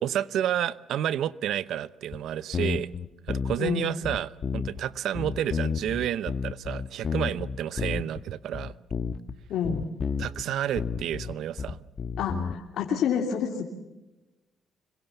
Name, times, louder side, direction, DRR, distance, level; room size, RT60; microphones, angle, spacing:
voice 1, 0.0-2.9 3.3-8.7 10.2-11.8, right 11 dB, 80° right, 0.8 m, -30 dB
sound 1, 2.1-2.2 2.5-3.7 4.0-4.8 5.2-8.2 8.5-9.4 9.6-10.4 10.8-12.6, left 6 dB, 45° left, 1.4 m, -31 dB
voice 2, 3.6-3.9 9.5-9.8 12.2-13.7, left 7 dB, 75° left, 2.9 m, -28 dB
25.5 x 22.5 x 7.1 m
cardioid pair, 90°, 0 cm